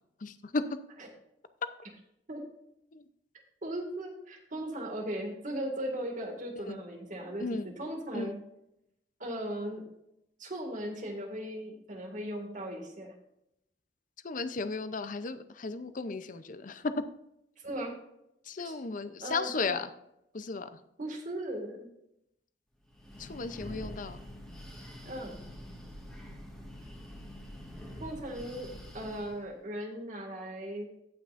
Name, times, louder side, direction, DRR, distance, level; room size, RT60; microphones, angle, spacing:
voice 1, 0.2-0.8 2.9-3.0 6.7-6.8 7.4-7.7 8.1-8.4 14.2-17.0 18.5-19.9 20.3-20.7 23.2-24.2, left 3 dB, 45° left, 11 dB, 0.6 m, -35 dB
voice 2, 3.6-8.4 9.2-9.8 10.4-13.1 17.6-18.0 18.6-18.7 19.2-19.7 21.0-21.9 25.0-25.4 28.0-28.7 28.9-30.9, right 1 dB, 45° right, 1 dB, 2.1 m, -38 dB
Breathing, 22.8-29.5, equal, 5° left, 1.7 m, -46 dB
17.0 x 5.9 x 2.6 m, 0.81 s
head